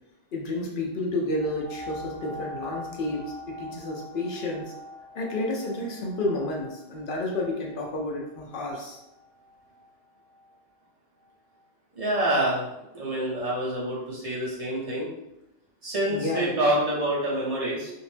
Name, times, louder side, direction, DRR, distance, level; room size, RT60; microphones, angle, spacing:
voice 1, 0.3-4.6 5.1-9.0 16.1-16.7, left 2 dB, 60° left, 0 dB, 0.6 m, -30 dB
sound 1, 1.4-10.6 11.2-11.3, left 1 dB, 90° right, 0.9 m, -44 dB
voice 2, 11.9-12.6 12.9-15.1 15.8-17.9, right 1 dB, 35° right, -6 dB, 0.8 m, -27 dB
2.6 x 2.0 x 3.1 m, 0.88 s
omnidirectional pair, 1.2 m